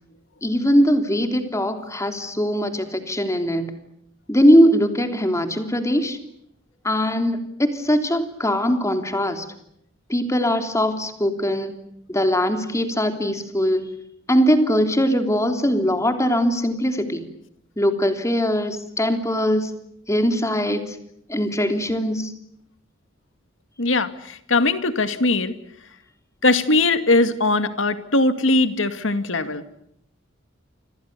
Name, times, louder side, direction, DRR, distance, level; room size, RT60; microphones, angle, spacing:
voice 1, 0.4-3.7 4.3-6.2 6.8-9.4 10.1-11.7 12.1-13.9 14.3-17.2 17.8-19.7 20.1-21.0 21.3-22.3, equal, 15° left, 6 dB, 3.3 m, -21 dB
voice 2, 23.8-25.5 26.4-29.6, left 2 dB, 70° left, 10 dB, 2.3 m, -20 dB
29.5 x 25.5 x 6.9 m, 0.73 s
head